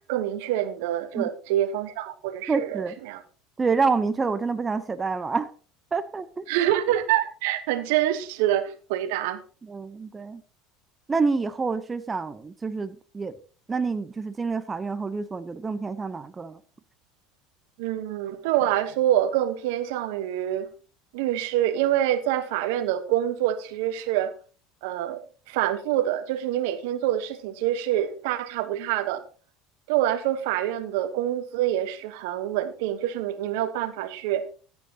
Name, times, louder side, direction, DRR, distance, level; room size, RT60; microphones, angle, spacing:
voice 1, 0.1-3.2 6.5-9.4 17.8-20.7 21.1-24.3 24.8-25.2 25.5-29.2 29.9-34.4, right 12 dB, 70° right, 12 dB, 1.1 m, -26 dB
voice 2, 2.5-3.0 3.6-5.5 5.9-6.5 9.6-10.4 11.1-13.4 13.7-16.6, right 4 dB, 20° right, 13 dB, 0.8 m, -27 dB
14.5 x 9.5 x 2.9 m, 0.37 s
hypercardioid pair, 75°, 0 cm